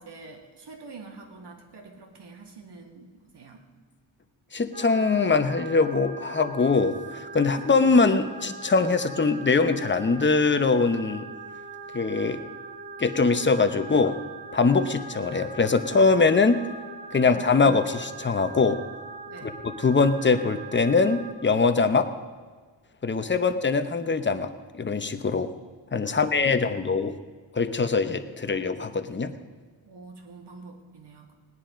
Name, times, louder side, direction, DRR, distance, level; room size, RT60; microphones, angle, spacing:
voice 1, 0.0-3.6 19.3-19.6 23.3-23.4 26.0-26.7 29.8-31.3, right 3 dB, 60° right, 3 dB, 2.2 m, -46 dB
voice 2, 4.5-11.3 11.9-12.4 13.0-14.2 14.5-16.6 17.1-18.8 19.4-22.1 23.0-25.5 25.9-27.2 27.5-29.3, left 4 dB, 25° left, 9 dB, 0.8 m, -22 dB
sound 1, 4.7-21.3, right 4 dB, 20° right, 1.5 m, -41 dB
18.5 x 10.5 x 5.1 m, 1.5 s
wide cardioid pair, 125°, 47 cm